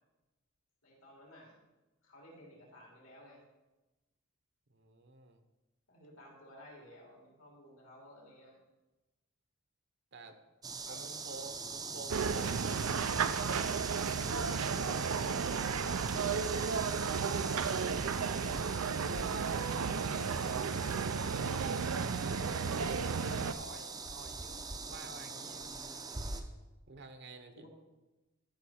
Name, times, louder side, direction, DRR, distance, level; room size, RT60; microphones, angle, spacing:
voice 1, 0.8-1.6 2.0-3.4 5.9-8.6 10.8-11.1 14.4-14.7 27.5-27.7, equal, 70° left, -2 dB, 3.3 m, -55 dB
voice 2, 4.7-5.4 10.1-10.4 10.9-13.3 14.3-15.1 15.9-16.3 17.2-18.3 19.0-21.0 22.1-25.7 26.9-27.7, right 3 dB, 50° right, 8 dB, 0.9 m, -49 dB
sound 1, 10.6-26.4, right 4 dB, 15° right, 0.6 m, -42 dB
sound 2, 12.1-23.5, right 5 dB, 75° right, 0.5 m, -33 dB
13.0 x 6.0 x 4.3 m, 1.1 s
head